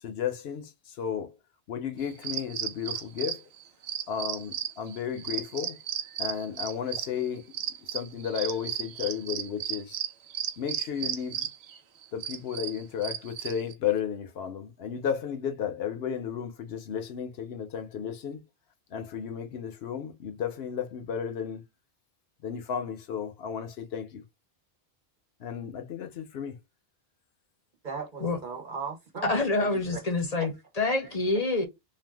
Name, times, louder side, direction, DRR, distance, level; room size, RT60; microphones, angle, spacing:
voice 1, 0.0-1.4 1.7-3.4 4.1-5.8 6.2-7.5 7.9-10.0 10.6-11.5 12.1-18.4 18.9-21.6 22.4-24.2 25.4-26.6, left 8 dB, 75° left, 0.9 m, -33 dB
sound 1, 2.0-13.7, right 9 dB, 85° right, 0.9 m, -34 dB
voice 2, 27.8-29.3 29.6-30.0 31.0-31.2, right 5 dB, 50° right, 1.0 m, -38 dB
voice 3, 29.2-31.7, left 2 dB, 40° left, 0.7 m, -27 dB
2.6 x 2.3 x 3.3 m
omnidirectional pair, 1.1 m